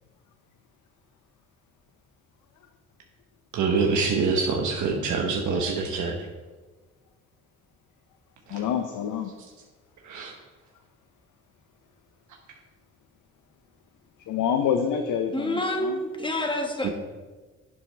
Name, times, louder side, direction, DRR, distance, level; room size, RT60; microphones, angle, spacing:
voice 1, 3.5-6.2 8.5-8.6 10.0-10.3 16.8-16.9, right 4 dB, 75° right, 0 dB, 1.1 m, -25 dB
voice 2, 8.5-9.3 14.2-16.0, left 8 dB, 80° left, 6 dB, 0.8 m, -27 dB
voice 3, 15.3-16.9, left 1 dB, 15° left, 3 dB, 1.5 m, -28 dB
11.0 x 7.9 x 3.3 m, 1.3 s
cardioid pair, 90°, 30 cm